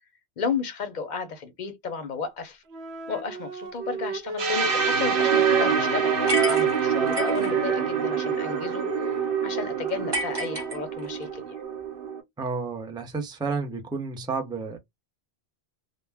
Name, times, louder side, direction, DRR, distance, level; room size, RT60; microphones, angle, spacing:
voice 1, 0.4-2.6 3.1-11.6, left 5 dB, 55° left, 0.6 m, -33 dB
Wind instrument woodwind instrument, 2.7-6.7 6.9-10.9, right 2 dB, 85° right, 0.9 m, -35 dB
sound 1, 4.4-12.2, right 7 dB, 65° right, 1.0 m, -25 dB
sound 2, 6.3-7.5 10.1-11.3, right 1 dB, 25° right, 1.0 m, -31 dB
voice 2, 12.4-14.8, right 4 dB, 5° right, 0.4 m, -31 dB
2.1 x 2.1 x 3.3 m
omnidirectional pair, 1.1 m